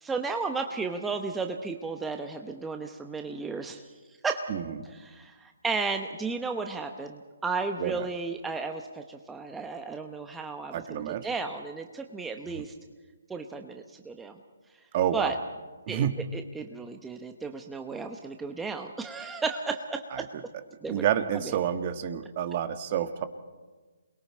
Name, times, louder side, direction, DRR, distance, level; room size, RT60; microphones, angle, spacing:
voice 1, 0.0-3.8 4.2-4.5 5.0-12.7 13.3-14.4 15.1-15.4 15.9-16.1 16.3-20.3 20.8-21.0 21.4-21.6, right 4 dB, 5° right, 4 dB, 1.0 m, -34 dB
voice 2, 7.8-8.1 10.7-11.3 12.5-12.6 14.9-15.3 15.9-16.2 20.1-20.2 20.9-23.3, right 10 dB, 35° right, 9 dB, 1.5 m, -29 dB
28.0 x 21.5 x 4.4 m, 1.3 s
figure-of-eight pair, 140°, 0 cm